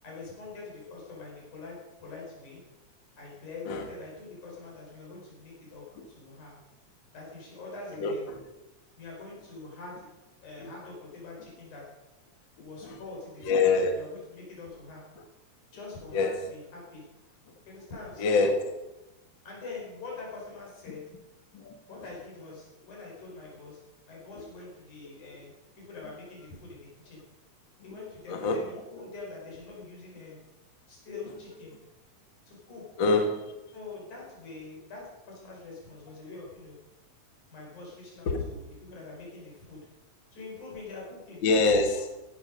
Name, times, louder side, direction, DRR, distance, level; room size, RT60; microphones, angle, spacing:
voice 1, 0.0-2.6 3.2-6.5 7.1-8.3 9.0-10.1 10.4-11.8 12.6-15.0 15.7-17.0 17.7-18.5 19.4-21.0 21.9-23.8 24.1-27.2 27.8-30.4 30.9-31.7 32.5-32.8 33.7-36.8 37.5-39.8 40.3-41.4, left 3 dB, 75° left, -3 dB, 6.3 m, -44 dB
voice 2, 8.0-8.4 10.6-10.7 12.8-13.0 13.4-13.9 16.1-16.4 18.2-18.7 21.5-21.7 28.3-28.6 33.0-33.4 38.2-38.4 41.4-42.1, left 3 dB, 50° left, 4 dB, 1.7 m, -25 dB
16.0 x 11.5 x 5.2 m, 1.0 s
omnidirectional pair, 3.5 m